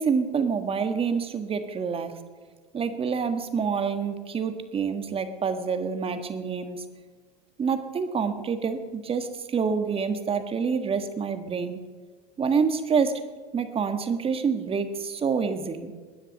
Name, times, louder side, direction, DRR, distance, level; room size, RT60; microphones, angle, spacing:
voice 1, 0.0-2.1 2.7-6.8 7.6-11.8 12.4-13.2 13.5-15.9, right 6 dB, 25° right, 8 dB, 1.6 m, -27 dB
20.5 x 9.9 x 6.6 m, 1.5 s
hypercardioid pair, 95°, 21 cm